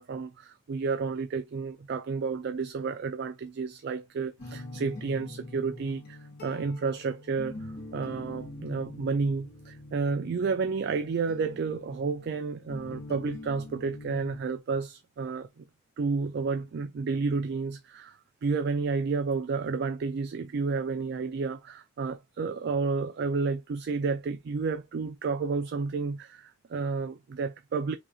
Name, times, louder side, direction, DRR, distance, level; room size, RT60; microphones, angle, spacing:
voice 1, 0.0-7.6 7.9-15.6 16.0-18.2 18.4-28.0, right 4 dB, 55° right, 0.3 m, -31 dB
sound 1, 4.4-14.4, left 1 dB, 50° left, 1.0 m, -44 dB
5.7 x 2.4 x 2.6 m
head